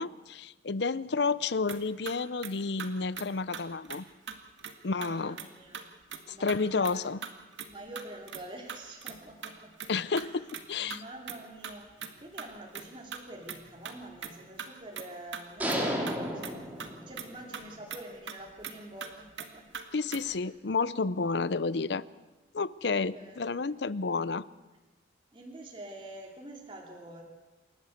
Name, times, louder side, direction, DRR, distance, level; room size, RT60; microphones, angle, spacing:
voice 1, 0.0-4.0 4.8-5.4 6.3-7.2 9.9-11.0 19.9-22.0 22.5-24.5, left 4 dB, 65° left, 18 dB, 0.6 m, -31 dB
sound 1, 1.7-2.2 2.4-2.5 2.8-2.9 3.2-3.3 3.5-4.0 4.3-4.7 5.0-5.5 5.7-5.8 6.1-6.2 6.5-6.9 7.2-9.2 9.4-9.9 10.2-11.0 11.3-11.4 11.6-12.8 13.1-14.3 14.6-14.7 15.0-15.1 15.3-15.8 16.1-16.5 16.8-16.9 17.2-17.3 17.5-17.6 17.9-18.8 19.0-19.1 19.4-19.5 19.7-19.8 20.1-20.4, right 7 dB, 75° right, 2.0 m, -40 dB
voice 2, 4.8-5.8 6.3-7.0 7.6-9.7 10.0-10.5 10.8-19.7 20.2-20.4 22.9-23.6 25.3-27.2, right 1 dB, 25° right, -1 dB, 2.9 m, -47 dB
sound 2, 15.6-17.4, equal, 10° right, 3.0 m, -32 dB
28.5 x 12.5 x 7.9 m, 1.1 s
head